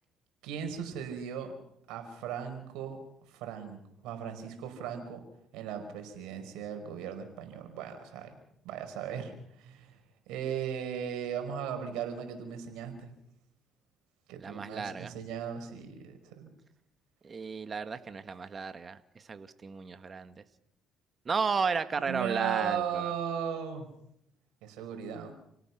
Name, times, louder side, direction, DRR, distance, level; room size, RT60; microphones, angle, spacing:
voice 1, 0.4-1.5 1.9-3.0 3.3-5.2 5.5-8.4 8.6-10.0 10.3-13.1 14.3-16.5 22.0-23.9 24.6-25.3, right 8 dB, 90° right, 6 dB, 5.1 m, -37 dB
voice 2, 14.4-15.1 17.2-20.4 21.2-23.1, right 5 dB, 40° right, 10 dB, 1.7 m, -33 dB
29.5 x 18.0 x 6.1 m, 0.73 s
cardioid pair, 80°, 0 cm